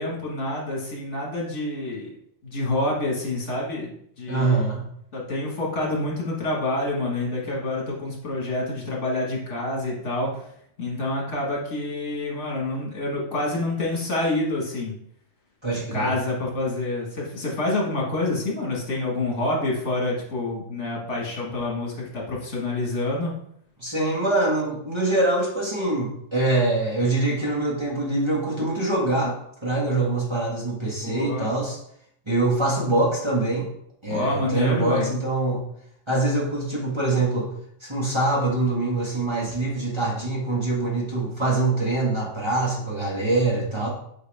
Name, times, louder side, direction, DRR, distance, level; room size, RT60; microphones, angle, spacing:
voice 1, 0.0-2.1 2.4-4.6 5.1-10.3 10.8-14.9 15.7-23.3 31.0-31.5 34.1-35.1, left 2 dB, 65° left, -3 dB, 2.2 m, -27 dB
voice 2, 4.3-4.9 15.6-16.1 23.8-29.3 29.6-31.8 32.3-33.7 34.0-35.6 36.1-37.5 37.8-43.9, right 2 dB, 20° right, -4 dB, 1.6 m, -24 dB
8.2 x 4.7 x 3.6 m, 0.70 s
omnidirectional pair, 1.3 m